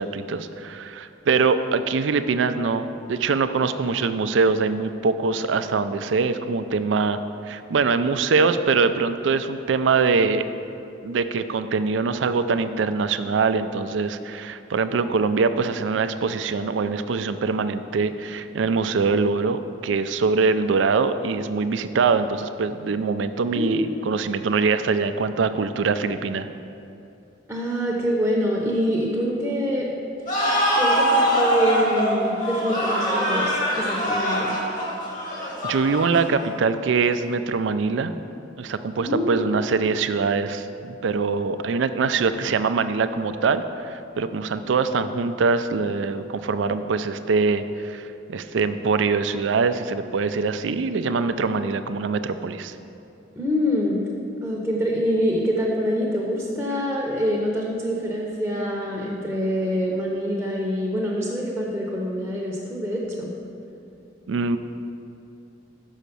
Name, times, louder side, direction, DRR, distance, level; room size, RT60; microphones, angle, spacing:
voice 1, 0.0-7.2 7.5-10.4 11.0-26.5 35.6-38.1 38.6-52.7 64.3-64.6, right 4 dB, 80° right, 10 dB, 0.4 m, -23 dB
voice 2, 23.4-24.2 27.5-29.9 30.7-34.5 39.0-39.6 53.4-54.0 54.4-63.3, equal, 10° right, -3 dB, 0.8 m, -25 dB
sound 1, 30.3-36.7, equal, 45° left, 1.8 m, -23 dB
6.2 x 5.7 x 6.8 m, 2.7 s
head